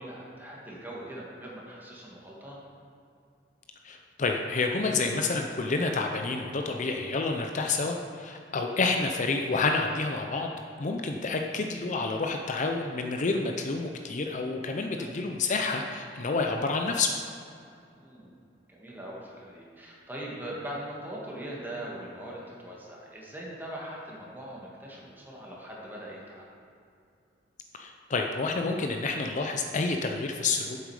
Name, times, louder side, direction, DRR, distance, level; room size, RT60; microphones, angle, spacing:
voice 1, 0.0-2.6 14.7-15.2 18.0-18.3 18.7-26.5, right 1 dB, 10° right, -4 dB, 1.7 m, -41 dB
voice 2, 3.8-10.5 10.8-17.1 27.7-30.8, left 3 dB, 40° left, 3 dB, 0.5 m, -29 dB
8.5 x 7.6 x 4.8 m, 2.5 s
head